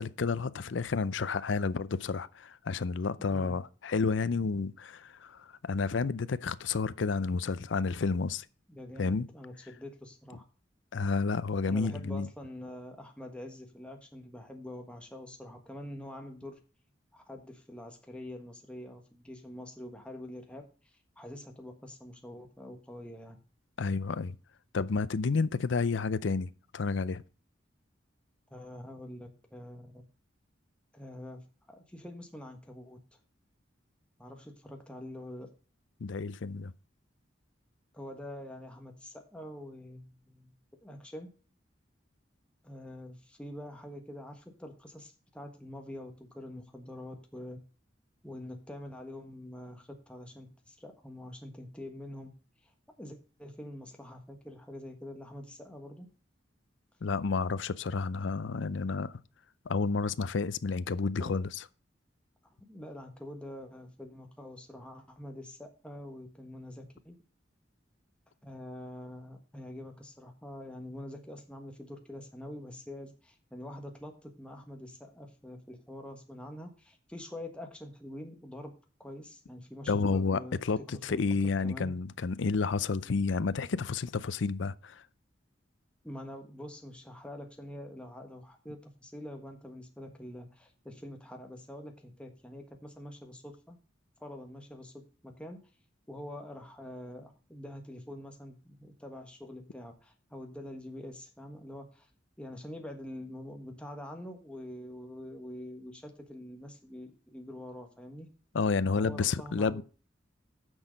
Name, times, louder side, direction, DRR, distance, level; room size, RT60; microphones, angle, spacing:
voice 1, 0.0-8.5 9.0-9.3 10.9-12.3 23.8-24.4 24.7-27.2 36.0-36.7 57.0-59.2 59.7-61.6 79.9-85.0 108.5-109.8, left 4 dB, 75° left, 0.5 m, -30 dB
voice 2, 3.2-3.6 8.7-10.4 11.7-16.6 17.1-23.4 28.5-30.1 30.9-33.0 34.2-35.5 37.9-40.5 40.8-41.3 42.6-47.6 48.2-52.3 52.6-52.7 53.0-56.1 61.2-61.4 62.6-67.2 68.4-78.7 79.0-80.6 80.9-81.9 86.0-93.8 94.2-95.6 96.1-102.1 102.4-108.3 108.9-109.8, left 1 dB, 5° left, 1.4 m, -45 dB
9.7 x 6.4 x 5.2 m
head